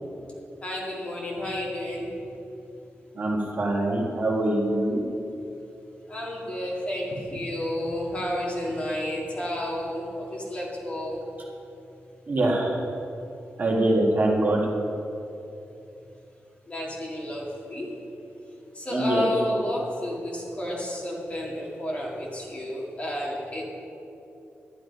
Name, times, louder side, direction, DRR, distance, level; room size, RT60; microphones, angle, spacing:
voice 1, 0.6-2.2 6.1-11.3 16.7-18.1 18.7-23.6, left 1 dB, 25° left, -4 dB, 2.1 m, -31 dB
voice 2, 3.2-5.0 12.3-12.8 13.6-14.6 18.9-19.3, right 1 dB, 40° right, -2 dB, 1.6 m, -23 dB
11.5 x 10.5 x 5.3 m, 2.8 s
wide cardioid pair, 175°, 5 cm